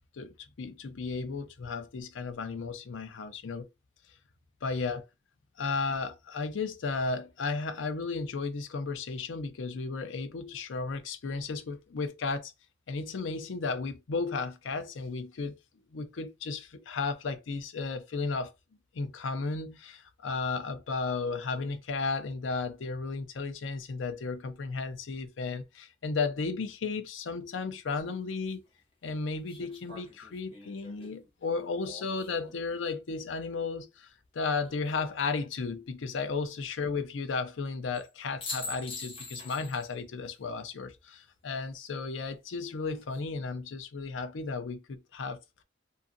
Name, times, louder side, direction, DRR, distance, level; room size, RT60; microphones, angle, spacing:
voice 1, 0.1-3.7 4.6-5.0 5.6-12.5 12.9-15.6 15.9-18.5 18.9-28.6 29.0-45.4, left 4 dB, 90° left, 0.5 m, -34 dB
sound 1, 28.0-28.1 29.5-32.7 34.5-35.2 37.9-38.1 38.4-39.9 40.3-40.4 42.7-43.2, left 3 dB, 30° left, 0.9 m, -44 dB
2.6 x 2.4 x 2.5 m
head